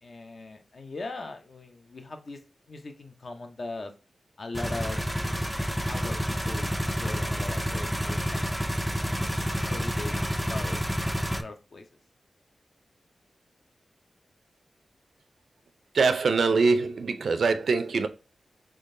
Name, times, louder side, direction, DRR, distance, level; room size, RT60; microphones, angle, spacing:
voice 1, 0.0-2.4 2.7-3.9 4.4-5.0 5.9-8.6 9.2-11.9, left 3 dB, 45° left, 0.6 m, -40 dB
sound 1, 4.5-11.4, equal, ahead, 0.3 m, -29 dB
voice 2, 15.9-18.1, right 4 dB, 70° right, 0.4 m, -23 dB
3.6 x 3.2 x 2.6 m
wide cardioid pair, 150°, 0 cm